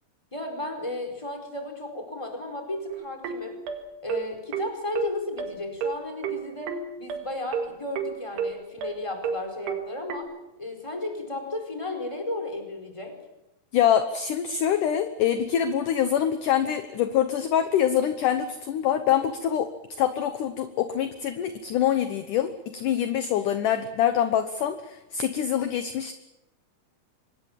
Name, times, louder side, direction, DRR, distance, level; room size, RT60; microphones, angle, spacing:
voice 1, 0.3-3.6 4.0-10.3 10.6-13.1, left 2 dB, 5° left, 3 dB, 4.3 m, -34 dB
sound 1, 2.9-10.2, right 6 dB, 80° right, 4.0 m, -31 dB
voice 2, 13.7-19.7 20.0-26.1, left 9 dB, 70° left, 9 dB, 2.2 m, -25 dB
25.5 x 21.0 x 7.4 m, 0.91 s
omnidirectional pair, 4.6 m